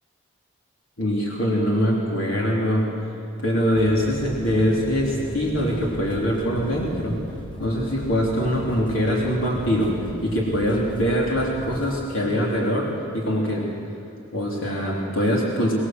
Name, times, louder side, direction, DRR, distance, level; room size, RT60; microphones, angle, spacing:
voice 1, 1.0-2.9 3.4-7.2 7.6-10.0 10.2-13.7 14.3-15.7, equal, 75° left, -3 dB, 3.7 m, -23 dB
sound 1, 3.7-11.9, equal, 25° left, 1.3 m, -38 dB
23.5 x 20.5 x 8.0 m, 2.7 s
head